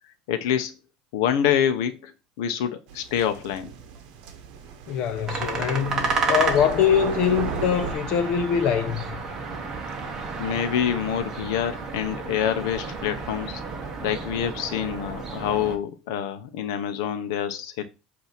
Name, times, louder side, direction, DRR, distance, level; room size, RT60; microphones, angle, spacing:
voice 1, 0.3-0.7 1.1-2.1 2.4-3.7 10.4-13.6 14.0-17.8, left 9 dB, 75° left, 0.8 m, -26 dB
sound 1, 2.9-7.9, right 6 dB, 50° right, 1.1 m, -35 dB
voice 2, 4.9-9.2, left 9 dB, 45° left, 0.9 m, -23 dB
sound 2, 5.3-15.8, right 4 dB, 20° right, 1.1 m, -31 dB
8.1 x 2.8 x 5.9 m
cardioid pair, 165°, 2 cm